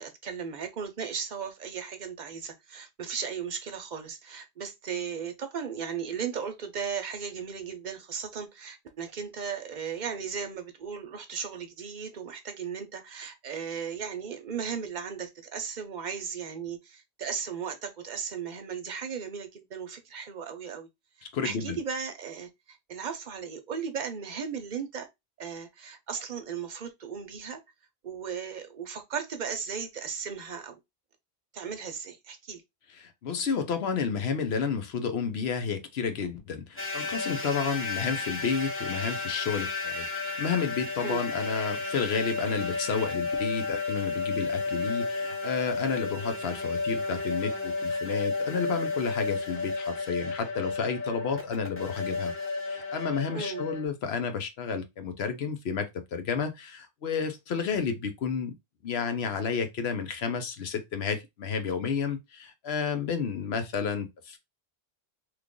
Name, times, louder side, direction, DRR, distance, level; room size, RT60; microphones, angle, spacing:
voice 1, 0.0-20.9 21.4-25.1 25.4-27.6 28.0-30.8 31.5-32.6 41.0-41.2 53.3-53.6, right 6 dB, 50° right, 0.7 m, -36 dB
voice 2, 21.3-21.8 32.9-52.3 52.7-58.5 58.8-64.4, left 6 dB, 85° left, 1.0 m, -31 dB
sound 1, 36.8-53.9, left 3 dB, 15° left, 0.7 m, -32 dB
3.2 x 2.4 x 3.6 m
omnidirectional pair, 1.0 m